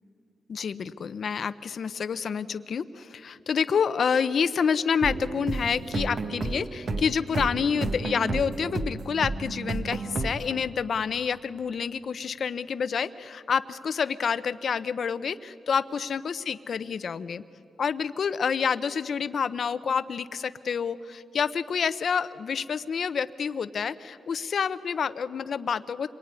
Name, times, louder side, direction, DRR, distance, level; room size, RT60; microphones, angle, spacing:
voice 1, 0.5-17.4 17.8-26.1, left 6 dB, 55° left, 14 dB, 0.7 m, -28 dB
sneaky guitar (loop), 5.0-10.6, right 3 dB, 45° right, 1.2 m, -32 dB
27.0 x 22.0 x 9.6 m, 2.6 s
wide cardioid pair, 130°, 0 cm